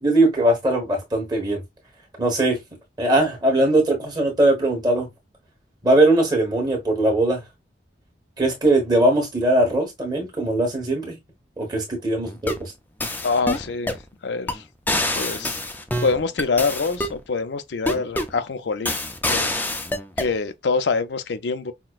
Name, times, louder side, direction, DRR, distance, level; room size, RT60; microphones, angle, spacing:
voice 1, 0.0-1.6 2.2-2.6 3.0-5.1 5.8-7.4 8.4-11.2 11.6-12.7, right 1 dB, 20° right, 1.4 m, -20 dB
sound 1, 12.3-12.7 13.0-14.0 14.5-14.6 14.9-17.2 17.9-18.4 18.9-20.3, left 1 dB, 10° left, 0.4 m, -26 dB
voice 2, 13.2-14.0 14.2-14.6 15.1-15.6 16.0-18.9 19.3-19.5 20.2-21.7, left 4 dB, 75° left, 0.5 m, -25 dB
5.8 x 2.2 x 2.4 m
head